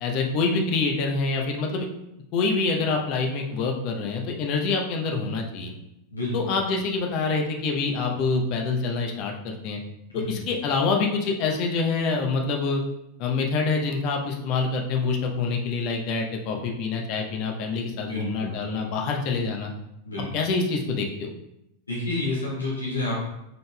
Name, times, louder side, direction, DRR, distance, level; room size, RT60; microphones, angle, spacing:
voice 1, 0.0-1.9 2.3-5.7 6.3-9.8 10.1-12.8 13.2-19.7 20.3-21.3, left 4 dB, 40° left, 1 dB, 0.8 m, -26 dB
voice 2, 6.1-6.5 10.1-10.4 18.1-18.7 20.0-20.3 21.9-23.2, left 2 dB, 80° left, -5 dB, 1.2 m, -29 dB
5.8 x 3.9 x 2.3 m, 0.84 s
figure-of-eight pair, 90°, 0 cm